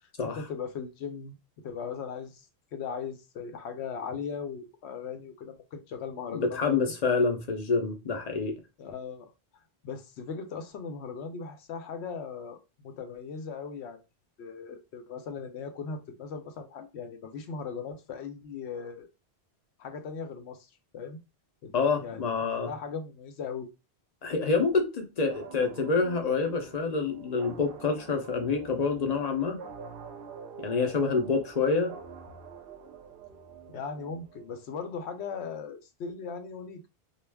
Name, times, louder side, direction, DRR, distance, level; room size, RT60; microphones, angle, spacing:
voice 1, 0.3-1.4 1.6-2.5 2.7-6.8 8.8-9.3 9.8-14.0 14.4-19.1 19.8-21.2 21.6-22.3 22.6-23.7 33.7-36.9, left 6 dB, 85° left, 0.9 m, -38 dB
voice 2, 6.3-8.6 21.7-22.7 24.2-29.6 30.6-31.9, left 4 dB, 45° left, 0.6 m, -27 dB
sound 1, 25.3-34.7, right 6 dB, 65° right, 0.7 m, -46 dB
2.3 x 2.3 x 3.2 m
omnidirectional pair, 1.1 m